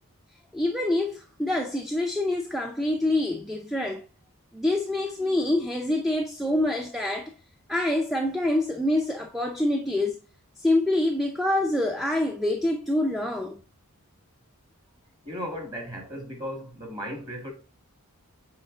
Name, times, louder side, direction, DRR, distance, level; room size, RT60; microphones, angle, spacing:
voice 1, 0.5-4.0 4.5-7.3 7.7-10.2 10.6-13.6, left 1 dB, ahead, 0.5 m, -26 dB
voice 2, 15.2-17.5, equal, 20° right, 2.0 m, -36 dB
7.3 x 4.4 x 3.8 m
head